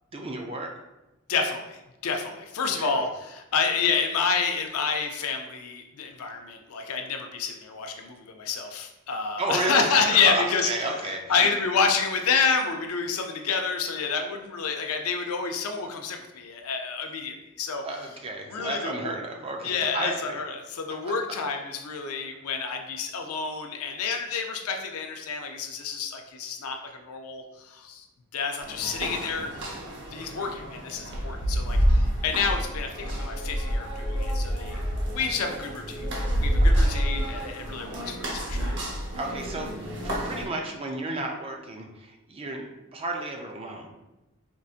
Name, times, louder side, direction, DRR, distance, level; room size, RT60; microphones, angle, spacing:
voice 1, 0.1-0.7 2.7-3.1 9.4-11.5 17.8-20.4 20.9-21.1 36.6-37.0 39.1-39.7 40.0-44.0, right 2 dB, 25° right, 2 dB, 0.4 m, -32 dB
voice 2, 1.3-10.7 11.3-17.8 18.5-19.1 19.6-28.1 28.3-29.5 30.1-34.8 35.1-36.0 36.4-38.7, left 5 dB, 85° left, 4 dB, 0.5 m, -28 dB
sound 1, 28.6-40.4, equal, 55° right, 0.8 m, -28 dB
4.5 x 2.6 x 2.4 m, 0.98 s
head